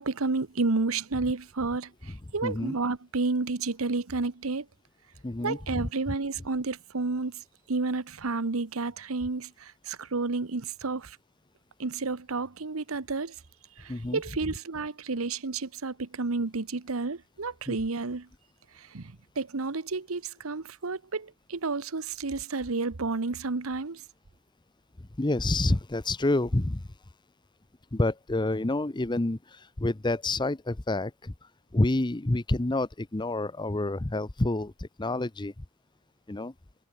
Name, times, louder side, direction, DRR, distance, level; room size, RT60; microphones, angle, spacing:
voice 1, 0.0-1.9 2.3-4.6 5.4-7.3 7.7-11.2 11.8-13.3 13.8-18.3 18.9-19.0 19.4-24.0, right 3 dB, 85° right, 1.0 m, -31 dB
voice 2, 2.1-2.7 5.2-5.9 13.9-14.2 14.5-14.6 17.7-17.8 25.2-26.8 27.9-35.5 36.3-36.5, left 2 dB, 20° left, 0.7 m, -28 dB
head